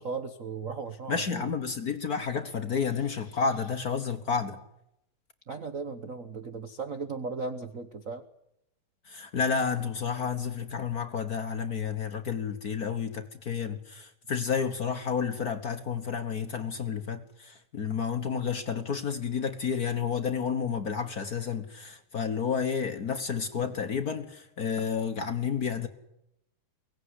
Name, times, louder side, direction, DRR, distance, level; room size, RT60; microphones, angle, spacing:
voice 1, 0.0-1.5 3.1-3.4 5.5-8.2, right 4 dB, 65° right, 0.8 m, -37 dB
voice 2, 1.1-4.6 9.1-25.9, left 6 dB, 50° left, 1.1 m, -31 dB
23.0 x 18.0 x 9.8 m
omnidirectional pair, 3.4 m